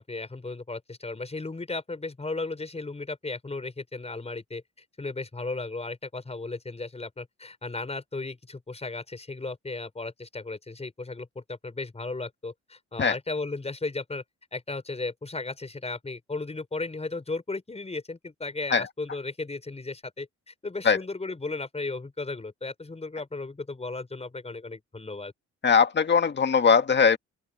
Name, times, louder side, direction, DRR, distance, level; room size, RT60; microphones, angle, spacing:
voice 1, 0.0-4.6 5.0-14.2 14.5-25.3, left 3 dB, 20° left, 6.0 m, -35 dB
voice 2, 25.6-27.2, left 6 dB, 35° left, 1.8 m, -20 dB
open air
cardioid pair, 90°, 30 cm